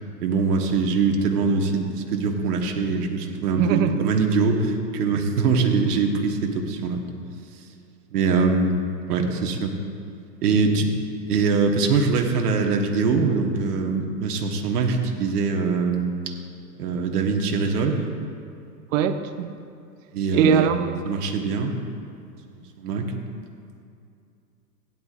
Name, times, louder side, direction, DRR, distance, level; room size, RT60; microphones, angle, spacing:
voice 1, 0.2-7.0 8.1-9.7 10.4-10.9 11.3-16.1 16.8-18.0 20.1-20.7 21.0-21.7 22.8-23.1, right 4 dB, 70° right, 2 dB, 1.5 m, -23 dB
voice 2, 3.6-4.0 18.9-19.5 20.3-21.0, right 8 dB, 50° right, 9 dB, 0.9 m, -21 dB
16.5 x 10.5 x 2.5 m, 2.5 s
hypercardioid pair, 105°, 49 cm